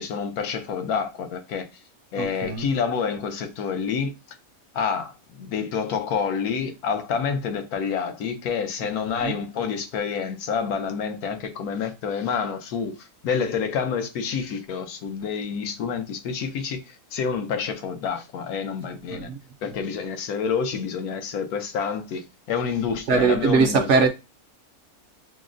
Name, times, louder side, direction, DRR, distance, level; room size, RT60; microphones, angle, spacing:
voice 1, 0.0-1.7 2.1-4.1 4.7-19.3 19.6-24.1, left 6 dB, 85° left, 1.2 m, -28 dB
voice 2, 2.2-2.7 9.2-9.3 19.1-19.4 23.1-24.1, right 5 dB, 65° right, 0.7 m, -21 dB
6.0 x 2.0 x 2.5 m
omnidirectional pair, 1.5 m